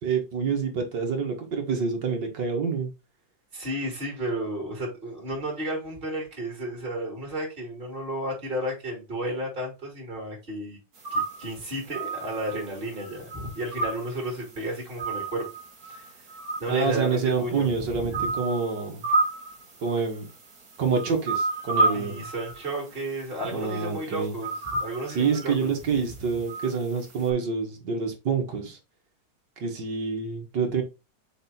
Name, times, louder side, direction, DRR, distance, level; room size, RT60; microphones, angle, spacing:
voice 1, 0.0-2.9 16.7-19.1 19.8-20.3 20.8-22.3 23.5-24.4 25.1-28.8 29.6-30.8, right 5 dB, 70° right, 2.3 m, -27 dB
voice 2, 3.5-10.8 11.1-15.5 15.8-16.2 16.6-18.3 21.9-25.8, right 1 dB, 30° right, 3.1 m, -33 dB
sound 1, 11.0-27.3, right 3 dB, 55° right, 1.9 m, -33 dB
6.7 x 3.5 x 4.2 m
omnidirectional pair, 2.0 m